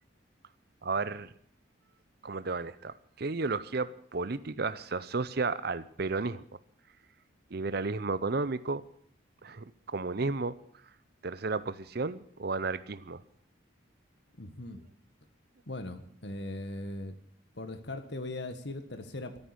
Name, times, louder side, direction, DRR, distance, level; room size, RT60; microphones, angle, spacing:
voice 1, 0.8-1.3 2.2-6.4 7.5-8.8 9.4-9.6 9.9-10.6 11.2-13.2, right 3 dB, 50° right, 15 dB, 0.6 m, -33 dB
voice 2, 14.4-14.8 15.7-17.1 17.5-19.4, left 1 dB, 55° left, 9 dB, 1.6 m, -39 dB
14.0 x 9.5 x 9.8 m, 0.64 s
head